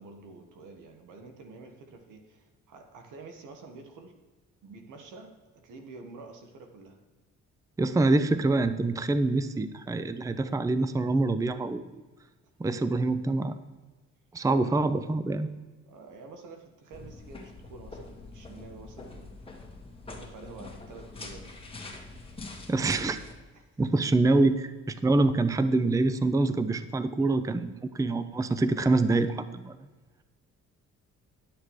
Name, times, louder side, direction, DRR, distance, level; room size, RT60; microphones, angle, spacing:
voice 1, 0.0-4.2 4.6-7.0 15.9-19.3 20.1-21.6 23.5-23.7 24.1-24.2, right 3 dB, 85° right, 5 dB, 1.6 m, -48 dB
voice 2, 7.8-12.0 12.6-13.6 14.3-15.5 22.7-23.2 23.8-29.8, right 2 dB, 10° right, 12 dB, 0.5 m, -25 dB
sound 1, 16.9-23.3, left 3 dB, 20° left, 1.7 m, -44 dB
11.0 x 6.6 x 4.8 m, 1.2 s
cardioid pair, 90°, 30 cm